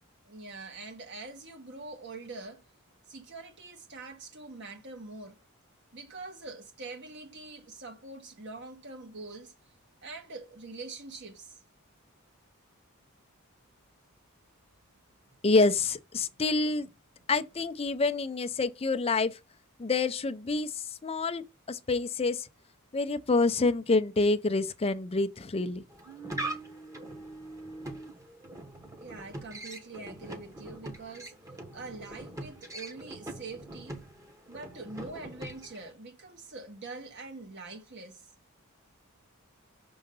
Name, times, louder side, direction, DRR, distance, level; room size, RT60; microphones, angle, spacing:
voice 1, 0.2-2.6 3.1-5.4 5.9-9.5 10.0-11.6 15.2-15.3 29.0-31.4 31.7-34.0 34.5-38.3, right 3 dB, 55° right, 1.5 m, -44 dB
voice 2, 15.4-16.9 17.3-19.4 19.8-22.5 22.9-25.8, left 3 dB, 25° left, 0.5 m, -27 dB
sound 1, 25.9-35.9, right 2 dB, 15° right, 1.1 m, -42 dB
6.3 x 3.8 x 5.4 m
head